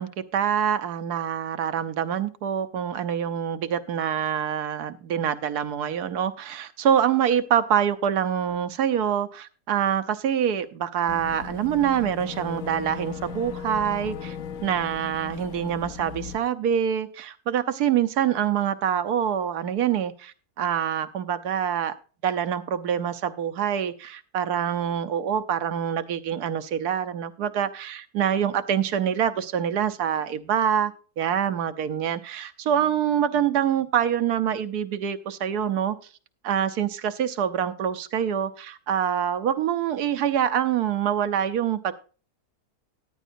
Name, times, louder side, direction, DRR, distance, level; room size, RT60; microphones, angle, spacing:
voice 1, 0.0-14.4 14.6-21.9 22.2-36.0 36.4-41.9, right 9 dB, 85° right, 11 dB, 1.4 m, -25 dB
Boat Water vehicle / Engine, 11.1-16.4, left 7 dB, 65° left, 1.2 m, -37 dB
14.5 x 10.0 x 2.6 m, 0.37 s
omnidirectional pair, 1.6 m